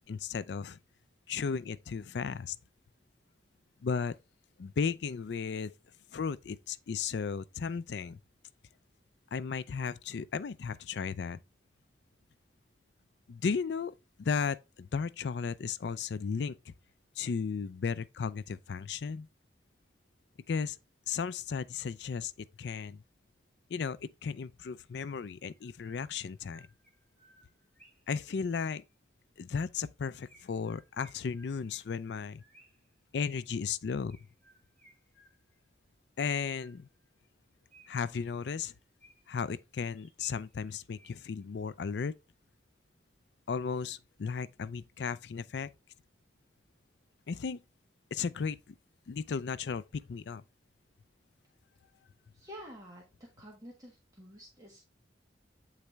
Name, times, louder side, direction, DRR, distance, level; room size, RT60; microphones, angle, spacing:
voice 1, 0.1-0.8 1.3-2.6 3.8-4.1 4.6-5.7 6.1-8.2 9.3-11.4 13.3-16.7 17.2-19.3 20.5-20.8 21.1-22.3 22.6-23.0 23.7-26.7 28.1-28.8 29.4-32.4 33.1-34.2 36.2-36.9 37.9-38.7 39.3-42.1 43.5-45.7 47.3-47.6 48.1-48.7 49.1-50.4, left 5 dB, 70° left, 0.4 m, -35 dB
Chirp tweet, 25.5-28.2 30.3-32.9 34.1-35.7 36.2-37.1 37.7-39.5 39.9-41.4, right 1 dB, 5° left, 2.8 m, -63 dB
voice 2, 52.3-54.8, equal, 20° right, 1.5 m, -50 dB
8.6 x 4.0 x 3.3 m
head